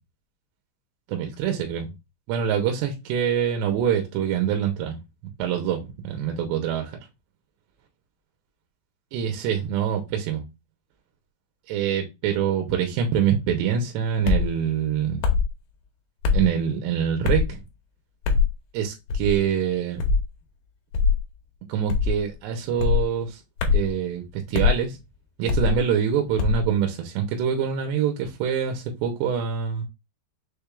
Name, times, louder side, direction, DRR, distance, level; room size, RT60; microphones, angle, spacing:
voice 1, 1.1-1.9 2.3-5.0 5.4-7.0 9.1-10.4 11.7-15.2 16.3-17.6 18.7-20.0 21.7-23.4 23.7-25.0 25.4-29.8, right 8 dB, 85° right, 2.8 m, -25 dB
sound 1, 14.2-14.5 15.2-15.5 16.2-16.5 17.2-17.5 18.2-18.5 19.1-19.4 20.0-20.3 20.9-21.2 21.9-22.2 22.8-23.0 23.6-23.9 24.5-24.8 25.5-25.8 26.4-26.6, left 5 dB, 75° left, 2.3 m, -21 dB
6.5 x 2.3 x 3.3 m
omnidirectional pair, 5.1 m